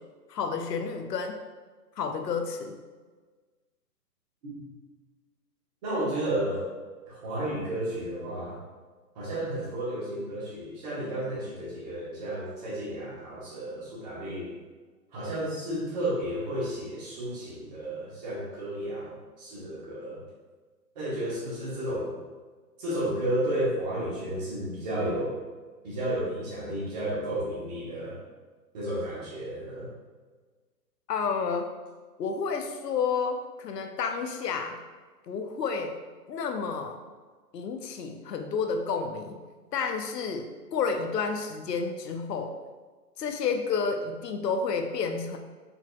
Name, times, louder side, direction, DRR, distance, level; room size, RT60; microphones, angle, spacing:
voice 1, 0.3-1.4 2.0-2.8 31.1-31.7 32.2-34.8 35.3-35.9 36.3-37.0 37.5-39.4 39.7-42.5 43.2-45.4, left 5 dB, 75° left, 6 dB, 0.7 m, -30 dB
voice 2, 5.8-6.7 7.1-8.6 9.1-14.5 15.1-20.2 20.9-22.1 22.8-25.3 25.8-28.2 28.7-29.9, right 1 dB, 25° right, -6 dB, 1.1 m, -32 dB
5.4 x 2.8 x 2.2 m, 1.4 s
hypercardioid pair, 150°, 49 cm